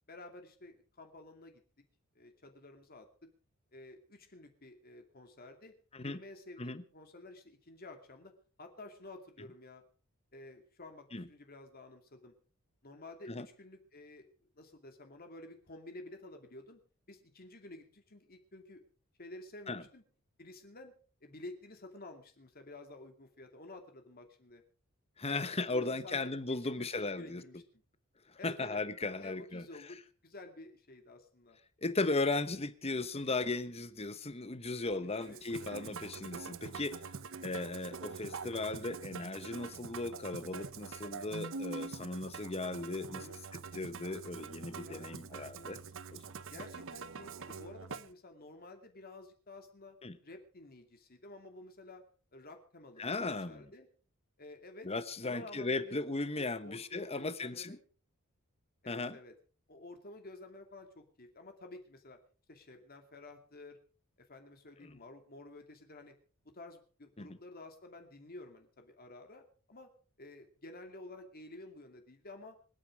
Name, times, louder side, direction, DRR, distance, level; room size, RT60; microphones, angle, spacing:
voice 1, 0.1-1.6 2.1-3.3 3.7-5.7 6.0-8.3 8.6-9.8 10.3-12.3 12.8-16.8 17.1-18.8 19.2-20.0 20.4-20.9 21.2-24.6 25.2-27.6 28.4-28.8 29.1-31.6 34.9-35.4 43.1-43.4 44.8-45.1 46.5-50.0 50.2-52.0 52.3-53.9 54.4-54.9 55.2-56.0 56.4-57.8 58.8-59.3 59.7-62.2 62.5-63.8 64.3-66.1 66.5-69.9 70.2-72.6, left 2 dB, 45° left, 2.5 m, -51 dB
voice 2, 25.2-27.4 28.4-29.6 31.8-37.0 37.4-43.3 43.5-45.8 46.1-46.2 50.0-50.2 53.0-53.7 54.8-57.8 58.9-59.2 64.8-65.0 67.2-67.4, left 3 dB, 30° left, 1.2 m, -36 dB
Musical instrument, 35.2-48.1, right 4 dB, 65° right, 0.8 m, -45 dB
25.5 x 9.2 x 4.9 m
head